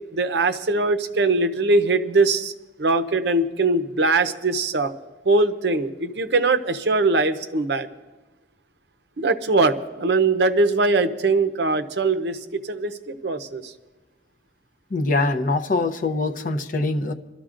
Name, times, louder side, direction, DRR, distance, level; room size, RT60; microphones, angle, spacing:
voice 1, 0.1-2.5 2.8-4.9 5.2-7.9 9.2-13.7, right 3 dB, 65° right, 10 dB, 0.7 m, -21 dB
voice 2, 14.9-17.1, left 2 dB, 45° left, 6 dB, 0.7 m, -23 dB
26.5 x 13.0 x 2.5 m, 1.2 s
head